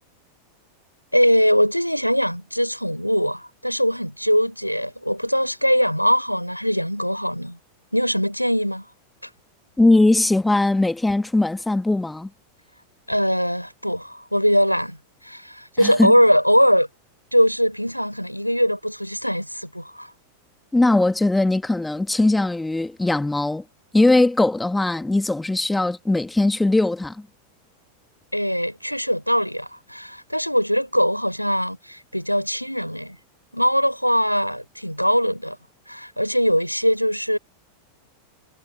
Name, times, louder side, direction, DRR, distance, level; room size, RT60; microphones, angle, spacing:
voice 1, 1.1-7.6 7.9-8.9 13.1-15.0 15.2-16.9 17.3-20.1 28.3-33.2 33.5-35.6 35.9-37.4, equal, 90° left, 4.5 m, -21 dB
voice 2, 9.8-12.3 15.8-16.1 20.7-23.6 23.9-27.2, left 2 dB, 5° left, 2.0 m, -19 dB
figure-of-eight pair, 90°, 0 cm